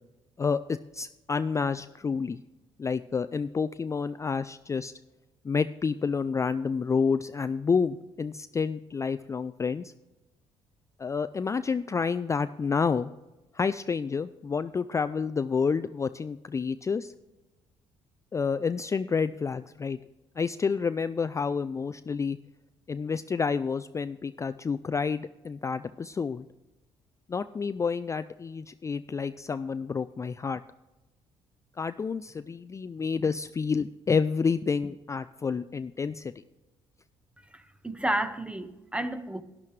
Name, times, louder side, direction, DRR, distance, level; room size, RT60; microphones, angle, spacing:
voice 1, 0.4-2.4 2.8-4.9 5.4-9.9 11.0-13.1 13.5-17.1 18.3-20.0 20.4-22.4 22.9-26.4 27.3-30.6 31.8-36.3, left 5 dB, 25° left, 0.3 m, -29 dB
voice 2, 37.5-39.4, right 1 dB, 10° right, 0.8 m, -31 dB
12.0 x 10.5 x 3.2 m
supercardioid pair, 65°, 12 cm